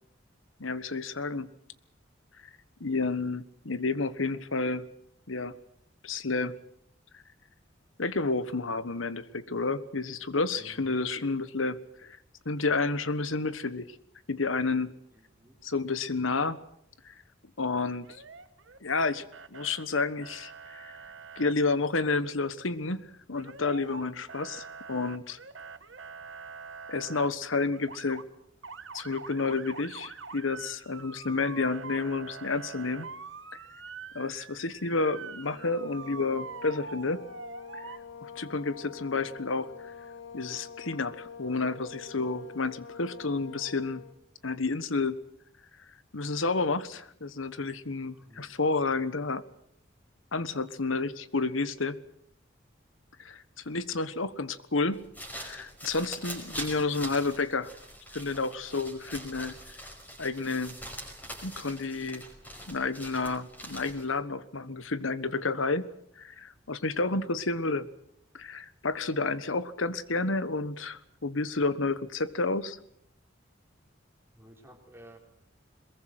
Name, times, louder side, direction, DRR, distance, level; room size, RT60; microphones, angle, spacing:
voice 1, 0.6-1.5 2.8-4.9 5.3-5.6 6.0-6.6 8.0-12.2 12.4-13.9 14.3-14.9 15.6-16.6 17.0-17.1 17.6-18.1 18.8-20.9 21.4-25.4 26.9-28.2 28.9-33.1 34.1-37.2 37.7-37.9 38.2-39.7 40.3-44.0 44.4-45.2 46.1-49.4 50.3-52.0 53.2-55.1 55.3-57.7 58.1-59.6 60.2-60.8 61.4-62.3 62.7-65.9 66.2-67.9 68.3-72.8, left 3 dB, 90° left, 14 dB, 1.3 m, -30 dB
voice 2, 10.5-11.0 15.4-15.6 48.1-48.5 74.4-75.2, right 1 dB, 10° right, 2 dB, 3.9 m, -53 dB
Motor vehicle (road) / Siren, 18.0-19.0 19.3-19.8 20.2-21.5 23.4-24.0 24.3-27.3 27.7-28.2 28.6-38.0, right 5 dB, 75° right, 1.6 m, -44 dB
sound 1, 35.4-44.2, left 6 dB, 70° left, 1.5 m, -46 dB
sound 2, 54.9-64.2, equal, 10° left, 5.3 m, -43 dB
22.5 x 21.5 x 7.8 m, 0.71 s
head